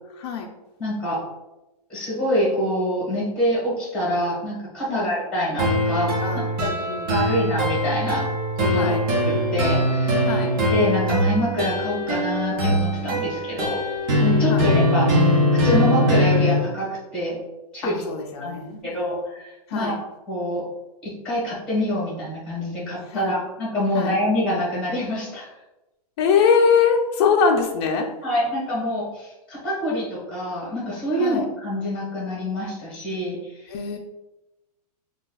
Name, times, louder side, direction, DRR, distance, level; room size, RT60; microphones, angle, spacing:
voice 1, 0.8-1.2 1.9-6.7 7.1-8.3 8.6-8.9 9.2-10.3 10.7-13.8 14.2-15.1 15.5-17.4 17.7-18.0 18.4-18.6 18.8-19.9 20.3-20.7 21.0-25.5 28.2-33.7, equal, 5° left, -6 dB, 1.2 m, -26 dB
sound 1, 5.6-16.6, equal, 35° right, 0.8 m, -21 dB
voice 2, 6.2-7.4 8.7-9.0 10.2-10.5 14.5-14.7 17.8-19.1 19.7-20.0 23.1-23.4 23.9-24.1 26.2-28.1 31.2-31.4 33.7-34.0, left 6 dB, 45° left, 1 dB, 0.4 m, -23 dB
5.1 x 2.3 x 2.2 m, 0.98 s
supercardioid pair, 160°, 20 cm